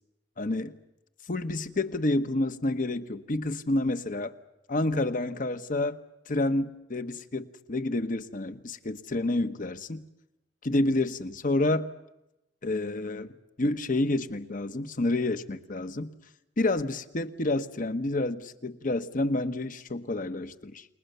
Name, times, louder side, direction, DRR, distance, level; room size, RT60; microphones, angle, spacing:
voice 1, 0.4-0.7 1.3-4.3 4.7-6.0 6.3-10.0 10.6-11.9 12.6-13.3 13.6-16.1 16.6-20.9, left 2 dB, 45° left, 10 dB, 1.1 m, -29 dB
30.0 x 20.5 x 6.8 m, 0.91 s
head